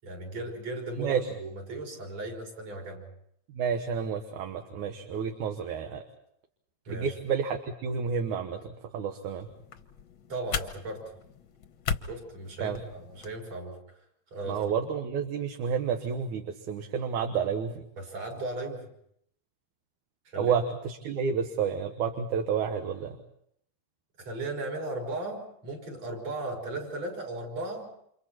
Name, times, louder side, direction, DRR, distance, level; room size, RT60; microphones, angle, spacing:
voice 1, 0.0-3.0 6.8-7.1 10.3-11.0 12.0-13.8 14.3-14.6 18.0-18.8 20.2-20.6 24.2-27.9, right 2 dB, 55° right, 0 dB, 6.7 m, -36 dB
voice 2, 3.5-6.0 6.9-9.5 12.6-12.8 14.5-17.8 20.4-23.2, right 6 dB, 75° right, 4 dB, 2.7 m, -30 dB
sound 1, 9.4-13.4, left 6 dB, 55° left, 1.5 m, -38 dB
30.0 x 28.0 x 4.4 m, 0.72 s
omnidirectional pair, 3.5 m